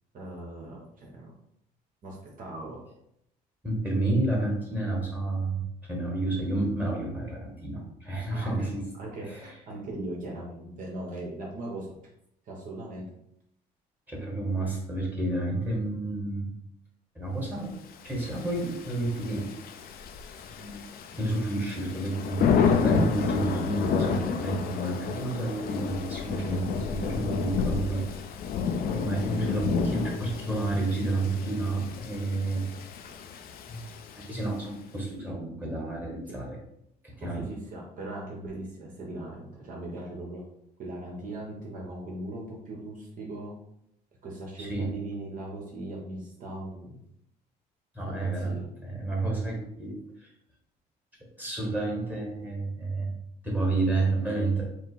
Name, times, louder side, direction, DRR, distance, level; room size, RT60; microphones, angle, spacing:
voice 1, 0.1-1.3 2.0-2.8 8.3-8.7 9.0-11.9 12.5-13.0 36.3-36.4 37.2-40.4 40.8-43.5 44.2-47.0 48.0-48.7, right 1 dB, 55° right, -2 dB, 1.2 m, -39 dB
voice 2, 3.6-8.8 9.3-9.5 14.1-16.5 17.1-17.7 18.0-19.5 20.6-20.8 21.1-28.0 28.9-32.6 33.7-33.8 34.3-36.6 37.2-37.4 44.6-44.9 47.9-48.5 48.8-50.0 51.4-53.1 53.4-54.6, right 2 dB, 10° right, -2 dB, 1.3 m, -30 dB
Thunder / Rain, 18.1-34.7, left 6 dB, 60° left, 0.5 m, -30 dB
5.0 x 2.0 x 4.1 m, 0.76 s
cardioid pair, 110°, 17 cm